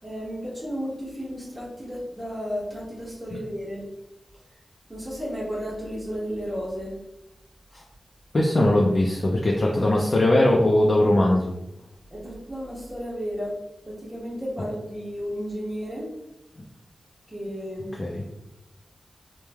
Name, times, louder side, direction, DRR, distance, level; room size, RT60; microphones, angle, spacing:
voice 1, 0.0-3.8 4.9-7.0 12.1-13.5 13.8-16.1 17.3-17.9, equal, 15° right, -7 dB, 1.0 m, -33 dB
voice 2, 8.3-11.5 18.0-18.2, left 1 dB, 50° left, -2 dB, 0.4 m, -20 dB
3.1 x 2.1 x 2.3 m, 0.90 s
wide cardioid pair, 65°, 0 cm